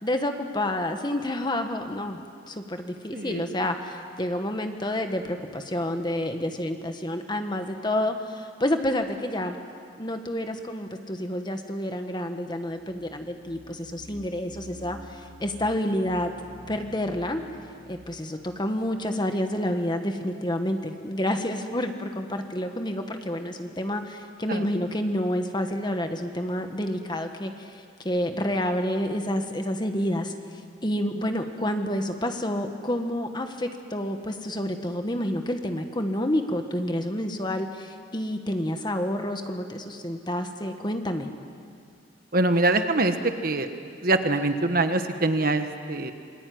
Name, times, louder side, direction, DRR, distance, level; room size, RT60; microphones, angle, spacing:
voice 1, 0.0-2.2 2.5-9.6 10.0-16.3 16.7-17.4 17.9-41.3, left 1 dB, 20° left, 6 dB, 1.6 m, -29 dB
voice 2, 3.1-3.4 24.5-24.6 42.3-43.7 44.0-46.1, right 2 dB, 50° right, 8 dB, 1.4 m, -24 dB
sound 1, 12.7-19.3, equal, 45° left, 6.6 m, -49 dB
27.5 x 22.0 x 9.5 m, 2.3 s
head